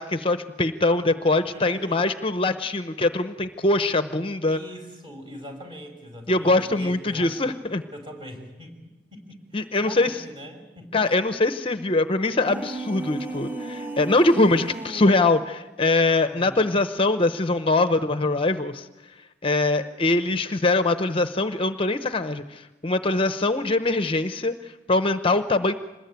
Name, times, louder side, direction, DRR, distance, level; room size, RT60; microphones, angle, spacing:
voice 1, 0.0-4.6 6.3-7.8 9.5-10.2 10.9-18.9 19.2-25.7, left 2 dB, 30° left, 10 dB, 0.8 m, -23 dB
voice 2, 1.5-2.0 4.5-7.5 7.9-8.7 9.1-11.2 16.3-16.7, equal, 30° right, 3 dB, 5.5 m, -42 dB
sound 1, 12.3-15.3, right 2 dB, 10° right, 1.2 m, -34 dB
26.0 x 20.5 x 9.4 m, 1.1 s
head